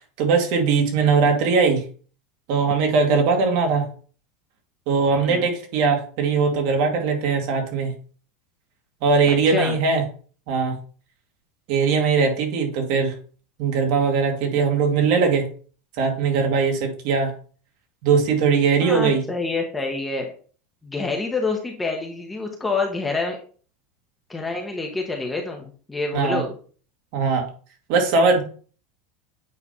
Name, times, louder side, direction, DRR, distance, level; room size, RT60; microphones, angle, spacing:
voice 1, 0.2-1.8 2.5-3.9 4.9-7.9 9.0-10.0 10.5-10.8 11.7-13.1 13.6-15.5 16.0-17.3 18.0-19.2 26.1-26.4 27.1-27.5 27.9-28.4, right 5 dB, 45° right, 2 dB, 1.9 m, -20 dB
voice 2, 9.3-9.7 18.8-20.3 20.8-23.4 24.3-26.6, left 3 dB, 5° left, 2 dB, 0.8 m, -27 dB
8.5 x 3.1 x 5.4 m, 0.42 s
supercardioid pair, 180°, 0 cm